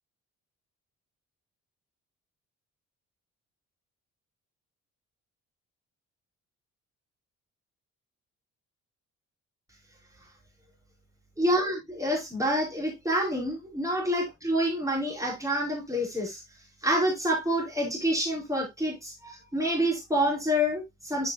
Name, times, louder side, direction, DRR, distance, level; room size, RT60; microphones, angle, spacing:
voice 1, 11.4-16.4 16.8-21.3, equal, 10° right, 5.5 m, -27 dB
8.7 x 8.7 x 2.4 m
cardioid pair, 90°, 30 cm